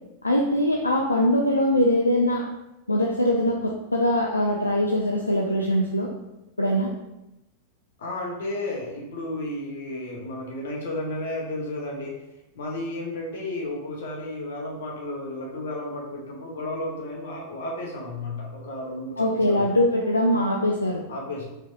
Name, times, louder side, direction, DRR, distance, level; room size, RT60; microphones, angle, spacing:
voice 1, 0.2-2.4 2.9-6.1 6.6-6.9 19.2-21.0, left 1 dB, 80° left, -1 dB, 0.4 m, -22 dB
voice 2, 8.0-12.1 12.5-19.7 21.1-21.5, left 1 dB, 60° left, -1 dB, 1.1 m, -33 dB
4.4 x 3.3 x 2.7 m, 0.94 s
figure-of-eight pair, 90°, 0 cm